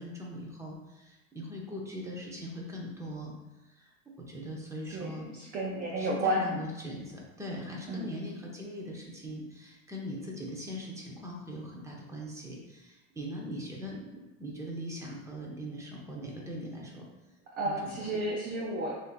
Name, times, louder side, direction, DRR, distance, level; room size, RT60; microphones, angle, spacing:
voice 1, 0.0-3.3 3.6-3.9 4.2-5.3 5.7-17.1 17.6-18.2, equal, 5° right, -2 dB, 0.7 m, -41 dB
voice 2, 4.9-6.4 7.9-8.1 17.6-18.9, right 1 dB, 20° right, -2 dB, 0.3 m, -32 dB
6.2 x 2.9 x 2.5 m, 1.0 s
supercardioid pair, 120°, 46 cm